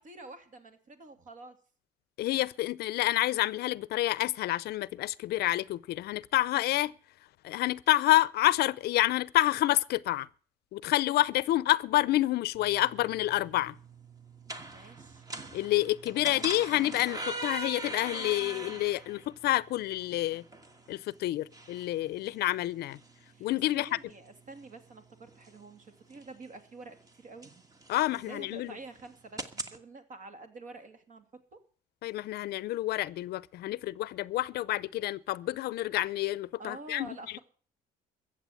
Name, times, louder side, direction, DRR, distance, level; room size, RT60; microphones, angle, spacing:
voice 1, 0.0-1.6 14.7-15.3 23.3-23.5 23.7-27.5 28.1-31.6 36.6-37.4, right 3 dB, 50° right, 2.7 m, -48 dB
voice 2, 2.2-6.9 7.4-10.3 10.7-13.7 15.5-20.4 20.9-23.0 23.4-23.9 27.9-28.7 32.0-37.2, left 16 dB, 70° left, 0.6 m, -28 dB
sound 1, 12.5-29.8, right 2 dB, 20° right, 1.5 m, -44 dB
14.5 x 7.8 x 9.2 m
cardioid pair, 110°, 17 cm